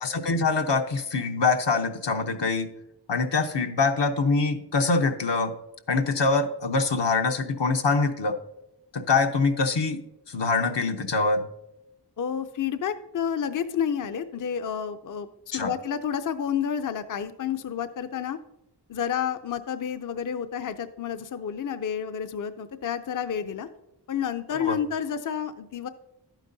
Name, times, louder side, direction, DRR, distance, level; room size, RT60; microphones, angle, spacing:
voice 1, 0.0-2.7 3.1-5.5 5.9-8.4 8.9-10.0 10.3-11.4 15.5-15.7 24.6-24.8, left 4 dB, 80° left, 5 dB, 0.8 m, -24 dB
voice 2, 12.2-18.4 18.9-23.7 24.1-25.9, left 8 dB, 50° left, 10 dB, 0.5 m, -30 dB
11.5 x 9.0 x 2.6 m, 0.89 s
wide cardioid pair, 70°, 42 cm